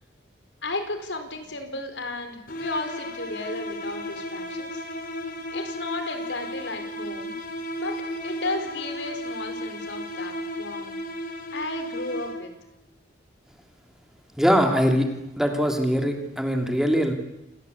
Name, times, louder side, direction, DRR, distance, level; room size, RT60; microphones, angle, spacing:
voice 1, 0.6-4.8 5.5-7.3 7.8-8.0 8.2-10.9 11.5-12.5, left 2 dB, 80° left, 7 dB, 4.7 m, -34 dB
sound 1, 2.5-12.7, equal, 50° left, 3.5 m, -34 dB
voice 2, 14.4-15.1 15.4-17.1, equal, 5° right, 4 dB, 3.1 m, -22 dB
28.5 x 19.0 x 8.6 m, 0.89 s
head